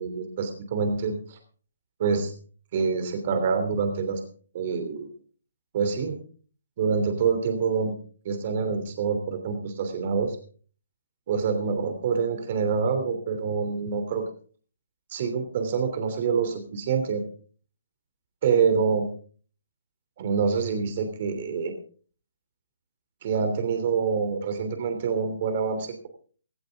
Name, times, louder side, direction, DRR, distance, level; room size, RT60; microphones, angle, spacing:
voice 1, 0.0-1.4 2.0-2.3 2.7-4.2 4.5-5.1 5.7-6.2 6.8-7.9 8.2-10.4 11.3-14.2 15.1-17.2 18.4-19.1 20.2-21.7 23.2-26.1, right 5 dB, 45° right, 6 dB, 3.0 m, -26 dB
17.0 x 14.5 x 3.6 m, 0.43 s
hypercardioid pair, 145°, 0 cm